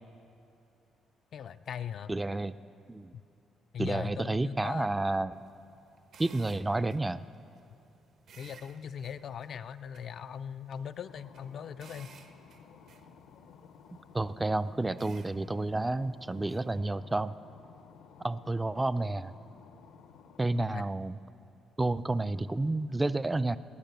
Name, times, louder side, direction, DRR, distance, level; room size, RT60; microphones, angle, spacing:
voice 1, 1.3-2.1 3.1-3.2 3.7-4.9 8.4-12.1 20.5-20.8, left 8 dB, 60° left, 10 dB, 0.3 m, -40 dB
voice 2, 2.1-2.5 2.9-3.1 3.8-5.4 6.2-7.2 14.1-17.3 18.2-19.3 20.4-21.2 21.8-23.6, right 2 dB, 15° right, 14 dB, 0.4 m, -30 dB
sound 1, 5.3-16.8, right 5 dB, 70° right, 1.1 m, -59 dB
sound 2, 11.1-20.4, left 6 dB, 85° left, 0.7 m, -55 dB
19.5 x 10.0 x 6.8 m, 2.6 s
cardioid pair, 90°, 0 cm